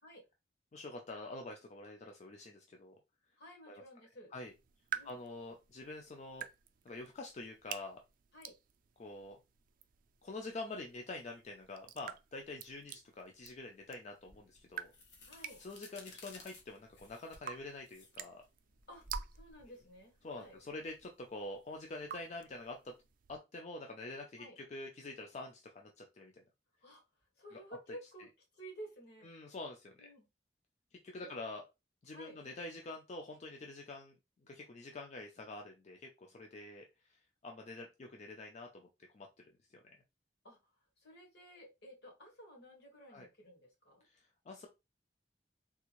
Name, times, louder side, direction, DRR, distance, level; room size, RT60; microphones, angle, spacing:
voice 1, 0.7-3.0 3.7-3.8 4.3-4.5 5.0-6.5 6.8-8.0 9.0-9.4 10.2-14.9 15.6-18.4 20.2-22.9 23.3-26.4 27.5-27.6 29.2-30.1 30.9-31.6 32.0-34.2 34.4-40.0 43.1-43.3 44.0-44.7, left 2 dB, 40° left, 3 dB, 0.4 m, -46 dB
voice 2, 3.4-4.3 4.9-5.2 8.3-8.5 15.3-15.6 18.9-19.1 19.3-20.6 24.4-24.6 26.8-27.0 27.4-28.3 28.5-29.3 30.0-30.2 31.2-31.3 32.1-32.4 40.4-40.6 41.0-44.0, right 1 dB, 65° left, -1 dB, 1.6 m, -53 dB
sound 1, 4.4-23.4, right 9 dB, 50° right, 0.4 m, -50 dB
sound 2, 14.3-21.0, left 1 dB, 85° left, 1.0 m, -53 dB
3.5 x 2.4 x 3.0 m, 0.24 s
head